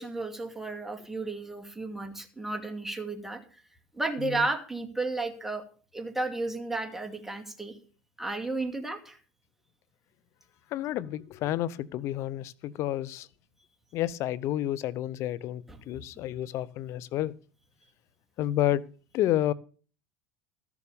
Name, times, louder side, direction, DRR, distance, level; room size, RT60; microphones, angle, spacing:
voice 1, 0.0-3.4 3.9-5.6 5.9-7.8 8.2-9.2 15.7-15.8, right 2 dB, 5° right, 5 dB, 2.4 m, -33 dB
voice 2, 10.7-13.3 13.9-17.3 18.4-18.8 19.1-19.5, left 13 dB, 55° left, 19 dB, 0.8 m, -30 dB
13.5 x 7.2 x 6.9 m, 0.40 s
hypercardioid pair, 95°, 6 cm